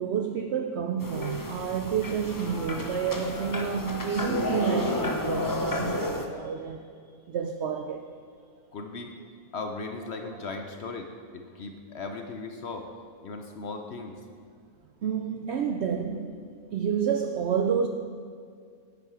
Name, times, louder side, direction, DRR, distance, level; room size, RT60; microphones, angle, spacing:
voice 1, 0.0-6.8 7.3-8.1 15.0-16.4 16.7-17.9, right 7 dB, 70° right, 0.6 m, -29 dB
sound 1, 1.0-6.3, left 2 dB, 30° left, 0.4 m, -31 dB
voice 2, 8.7-9.1 9.5-12.9 13.2-14.2, left 3 dB, 55° left, 0.8 m, -37 dB
10.5 x 8.5 x 4.8 m
omnidirectional pair, 1.6 m